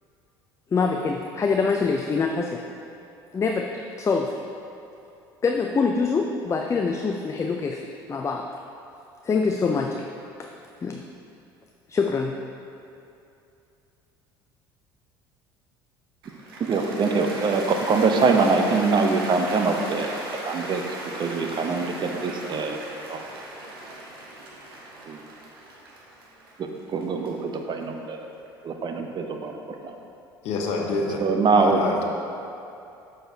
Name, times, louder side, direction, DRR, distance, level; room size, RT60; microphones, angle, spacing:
voice 1, 0.7-2.6 3.3-3.7 4.0-4.3 5.4-7.8 8.1-8.4 9.2-10.0 10.4-10.5 10.8-11.0 11.9-12.3, left 4 dB, 25° left, 2 dB, 0.4 m, -24 dB
Cheering / Applause, 16.2-28.5, right 2 dB, 85° right, 0.8 m, -37 dB
voice 2, 16.6-23.2 25.1-25.3 26.6-28.2 28.6-30.0 31.2-31.8, right 4 dB, 40° right, 4 dB, 0.6 m, -24 dB
voice 3, 30.4-31.2 31.5-32.0, left 3 dB, 60° left, 1 dB, 0.9 m, -27 dB
6.5 x 6.2 x 2.7 m, 2.7 s
hypercardioid pair, 65°, 12 cm